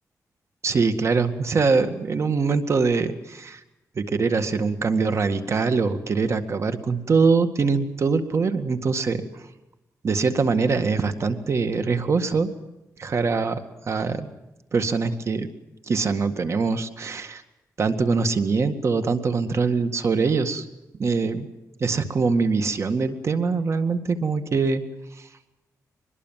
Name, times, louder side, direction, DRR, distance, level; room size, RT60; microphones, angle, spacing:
voice 1, 0.6-3.6 4.0-9.5 10.0-12.5 13.0-13.6 13.9-14.3 14.7-15.5 15.9-17.4 17.8-20.7 21.0-21.5 21.8-24.8 25.2-25.3, right 4 dB, 50° right, 9 dB, 1.9 m, -23 dB
23.5 x 21.5 x 7.5 m, 0.96 s
cardioid pair, 110°, 6 cm